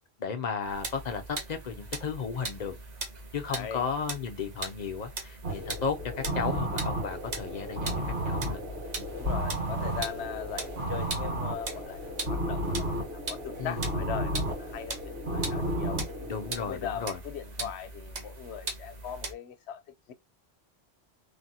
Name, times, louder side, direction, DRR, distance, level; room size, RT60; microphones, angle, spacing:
voice 1, 0.2-2.8 3.3-7.9 8.2-8.6 9.0-9.1 13.6-13.8 16.2-17.2 17.6-17.7, left 6 dB, 50° left, 0.6 m, -34 dB
sound 1, 0.6-19.3, right 3 dB, 45° right, 0.8 m, -40 dB
voice 2, 3.5-3.8 9.1-16.0 16.5-19.8 20.1-20.2, left 8 dB, 85° left, 0.8 m, -39 dB
sound 2, 5.4-16.5, right 1 dB, 75° right, 1.8 m, -33 dB
3.3 x 2.2 x 2.7 m
omnidirectional pair, 1.1 m